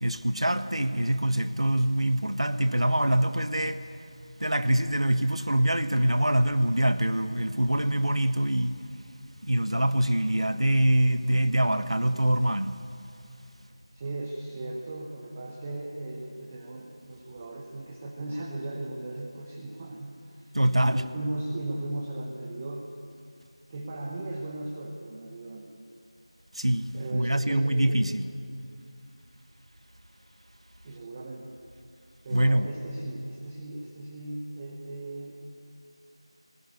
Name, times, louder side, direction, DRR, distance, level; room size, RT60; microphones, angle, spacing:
voice 1, 0.0-3.9 4.4-8.8 9.4-12.8 20.5-21.0 26.5-28.3 32.3-32.7, right 1 dB, 70° right, 1.3 m, -24 dB
voice 2, 13.9-20.5 20.8-22.9 23.7-25.8 26.9-28.0 30.8-31.6 32.2-35.5, right 2 dB, 15° right, 1.1 m, -37 dB
19.5 x 19.0 x 9.7 m
figure-of-eight pair, 170°, 3 cm